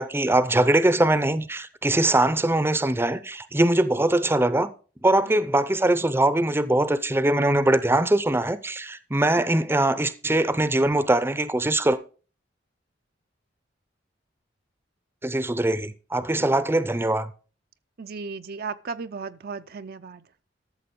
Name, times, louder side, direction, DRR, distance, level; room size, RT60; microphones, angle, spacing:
voice 1, 0.0-4.7 5.0-12.0 15.2-17.3, right 1 dB, 15° right, 0.6 m, -22 dB
voice 2, 18.0-20.2, right 4 dB, 55° right, 0.5 m, -35 dB
13.0 x 6.8 x 5.2 m
head